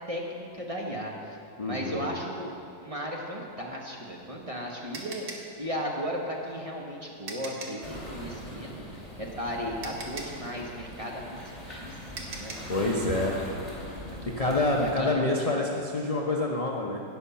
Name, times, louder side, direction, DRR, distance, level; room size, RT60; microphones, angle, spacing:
voice 1, 0.1-1.4 1.6-14.3 14.8-15.7, equal, 25° right, -2 dB, 1.0 m, -36 dB
voice 2, 1.6-2.1 12.7-13.4 14.3-17.0, left 2 dB, 50° left, -2 dB, 0.4 m, -27 dB
sound 1, 4.0-7.9 9.3-9.4 9.8-12.8, right 3 dB, 60° right, 1.6 m, -42 dB
sound 2, 7.8-14.9, left 1 dB, 20° left, 2.8 m, -41 dB
16.5 x 5.7 x 5.6 m, 2.6 s
omnidirectional pair, 1.9 m